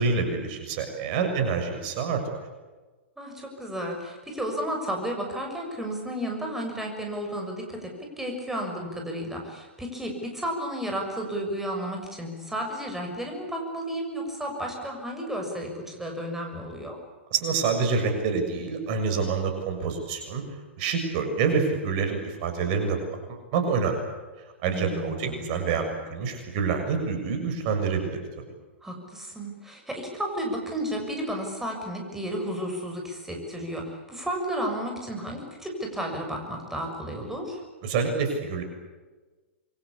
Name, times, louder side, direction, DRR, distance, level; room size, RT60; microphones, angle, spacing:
voice 1, 0.0-2.2 17.3-20.4 20.8-23.0 23.3-24.0 24.6-28.2 37.8-38.6, right 5 dB, 45° right, 5 dB, 6.8 m, -27 dB
voice 2, 3.2-17.0 24.7-25.5 28.8-37.6, equal, 5° right, 1 dB, 6.8 m, -32 dB
27.5 x 24.0 x 8.5 m, 1.3 s
figure-of-eight pair, 110°, 7 cm